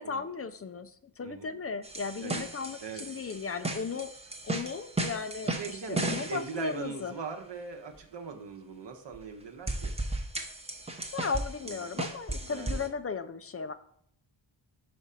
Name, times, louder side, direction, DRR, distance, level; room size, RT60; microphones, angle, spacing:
voice 1, 0.0-4.1 4.4-7.1 11.1-13.7, left 5 dB, 35° left, 11 dB, 0.4 m, -36 dB
voice 2, 1.2-1.6 2.2-2.5 2.8-3.0 5.6-10.0 11.6-11.9 12.5-12.8, right 5 dB, 60° right, 3 dB, 0.9 m, -40 dB
sound 1, 1.8-6.6 9.1-9.2 9.7-12.9, right 2 dB, 15° right, 0.7 m, -35 dB
4.9 x 4.7 x 5.6 m, 0.67 s
wide cardioid pair, 165°, 48 cm